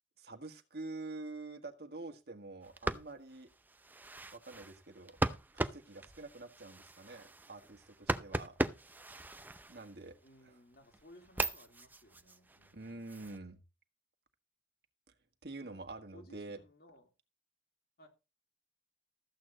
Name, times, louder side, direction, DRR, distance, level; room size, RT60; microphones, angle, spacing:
voice 1, 0.2-3.5 4.3-5.2 5.5-8.5 9.7-10.2 10.4-10.6 12.7-13.6 15.4-16.6, right 2 dB, 60° right, 1.6 m, -47 dB
sound 1, 2.6-10.3 10.7-13.4, right 2 dB, 10° right, 0.6 m, -39 dB
voice 2, 10.2-13.0 15.6-17.1 18.0-18.1, left 1 dB, 55° left, 3.2 m, -60 dB
14.0 x 8.6 x 3.9 m
head